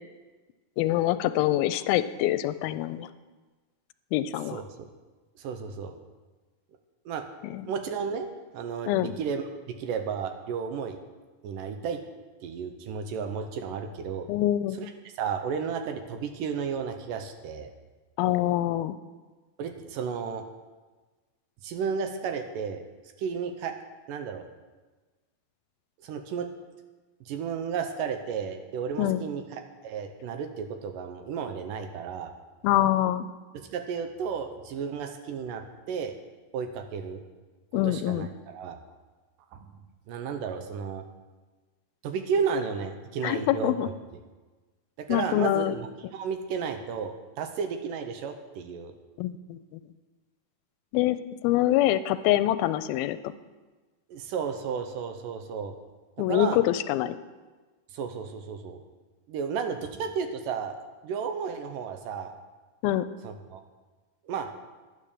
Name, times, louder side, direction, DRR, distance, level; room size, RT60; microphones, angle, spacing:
voice 1, 0.8-3.1 4.1-4.6 7.4-7.6 8.9-9.1 14.3-14.8 18.2-19.0 29.0-29.2 32.6-33.3 37.7-38.3 43.2-43.9 45.1-45.7 49.2-49.6 50.9-51.2 51.4-53.2 56.2-57.2 62.8-63.1, left 13 dB, 90° left, 13 dB, 2.4 m, -25 dB
voice 2, 4.5-4.9 5.4-5.9 7.1-7.2 7.7-8.3 8.5-11.0 11.4-12.0 12.4-14.3 14.8-14.9 15.2-17.7 19.6-20.4 21.6-22.8 23.2-23.7 24.1-24.5 26.0-26.5 27.3-32.3 33.5-36.2 36.5-37.2 37.8-38.3 38.5-38.8 39.5-39.8 40.1-41.1 42.0-43.9 45.0-48.9 54.1-55.7 56.3-56.6 57.9-58.8 59.3-60.8 61.0-62.3 63.2-63.6 64.3-64.5, right 6 dB, 75° right, 7 dB, 2.3 m, -33 dB
11.0 x 9.8 x 6.7 m, 1.3 s
omnidirectional pair, 4.2 m